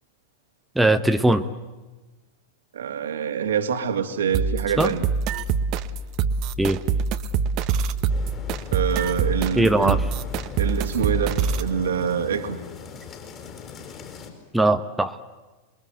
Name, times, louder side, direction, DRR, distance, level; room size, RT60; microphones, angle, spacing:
voice 1, 0.7-1.5 4.8-4.9 6.6-6.8 9.5-10.0 14.5-15.2, right 1 dB, 5° right, 7 dB, 1.2 m, -20 dB
voice 2, 2.7-5.0 8.7-10.0 10.6-12.6, right 7 dB, 65° right, 7 dB, 2.4 m, -25 dB
sound 1, 4.3-11.7, right 5 dB, 40° right, 1.3 m, -25 dB
sound 2, 8.1-14.3, left 7 dB, 30° left, 6.4 m, -39 dB
28.0 x 23.0 x 8.0 m, 1.2 s
figure-of-eight pair, 90°, 0 cm